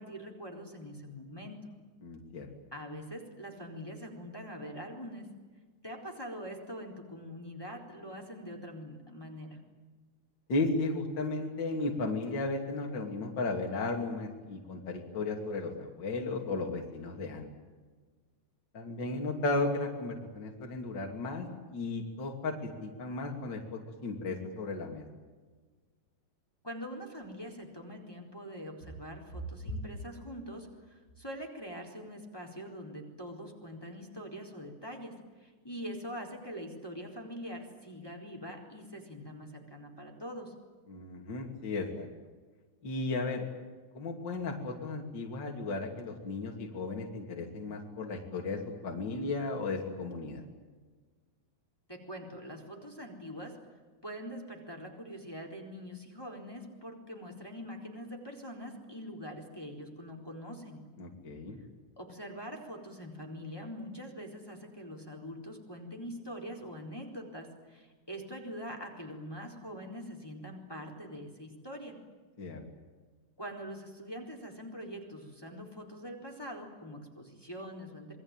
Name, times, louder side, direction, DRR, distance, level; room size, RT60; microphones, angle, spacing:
voice 1, 0.0-1.7 2.7-5.3 5.8-9.6 26.6-40.5 51.9-53.6 54.0-60.8 62.0-72.0 73.4-78.2, equal, 5° left, 1 dB, 3.9 m, -44 dB
voice 2, 2.0-2.5 10.5-17.5 18.7-25.0 40.9-42.1 42.8-43.5 43.9-50.4 61.0-61.6 72.4-72.6, left 3 dB, 35° left, 1 dB, 3.4 m, -35 dB
28.0 x 21.0 x 9.1 m, 1.4 s
omnidirectional pair, 3.4 m